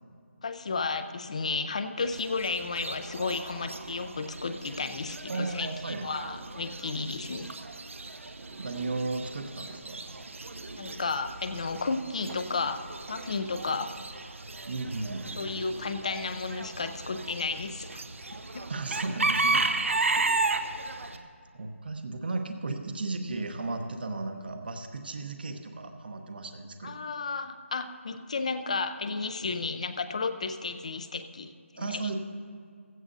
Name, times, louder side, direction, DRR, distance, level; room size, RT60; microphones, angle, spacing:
voice 1, 0.4-7.5 10.8-14.0 15.4-18.0 18.5-18.7 20.1-20.3 26.8-32.1, left 4 dB, 30° left, 10 dB, 0.5 m, -33 dB
Chicken rooster / Bird, 2.0-21.2, right 3 dB, 70° right, 0.9 m, -34 dB
voice 2, 5.3-6.1 8.6-10.0 14.7-15.4 18.7-19.7 19.9-20.5 21.0-27.0 31.8-32.2, right 3 dB, 45° right, 6 dB, 1.0 m, -35 dB
15.5 x 15.5 x 2.7 m, 2.2 s
figure-of-eight pair, 170°, 7 cm